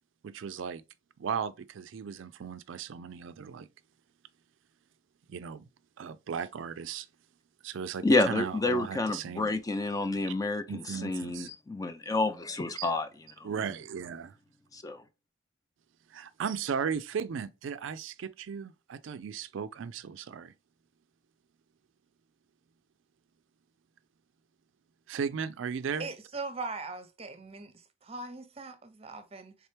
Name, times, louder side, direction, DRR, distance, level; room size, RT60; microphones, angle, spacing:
voice 1, 0.2-0.8 1.2-3.7 5.3-5.6 6.0-7.1 7.6-9.5 10.7-11.5 12.8-12.9 13.4-14.3 16.1-20.5 25.1-26.1, right 6 dB, 70° right, 0.4 m, -36 dB
voice 2, 8.0-13.1 13.4-13.5 14.7-15.0, left 2 dB, 20° left, 0.3 m, -29 dB
voice 3, 26.0-27.7 28.0-29.6, right 3 dB, 30° right, 0.6 m, -40 dB
4.3 x 3.6 x 3.3 m
head